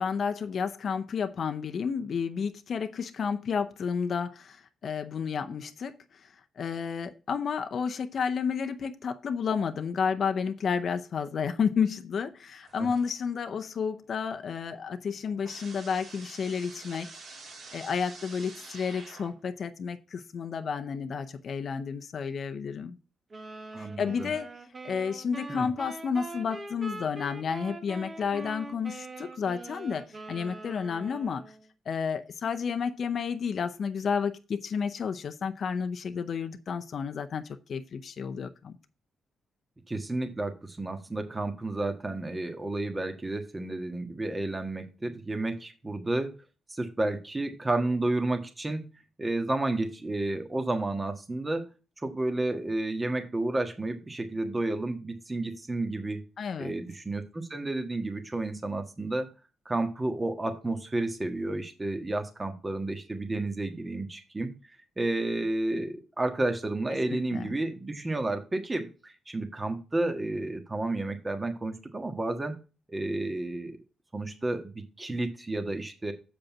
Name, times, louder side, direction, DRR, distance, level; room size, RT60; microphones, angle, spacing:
voice 1, 0.0-17.1 17.7-23.0 23.8-24.5 24.8-31.4 31.9-38.8 56.4-56.7 67.1-67.6, left 6 dB, 60° left, 0.7 m, -31 dB
sound 1, 12.6-13.4 13.8-19.6, right 3 dB, 65° right, 2.7 m, -48 dB
sound 2, 23.3-31.7, right 3 dB, 40° right, 1.4 m, -43 dB
voice 2, 23.7-24.3 25.5-25.7 39.9-46.4 46.7-48.9 49.2-51.7 52.0-56.2 56.6-59.3 59.6-64.5 65.0-72.6 72.9-73.8 74.1-76.1, right 2 dB, 25° right, 1.5 m, -31 dB
7.3 x 5.1 x 6.0 m
supercardioid pair, 60°, 0 cm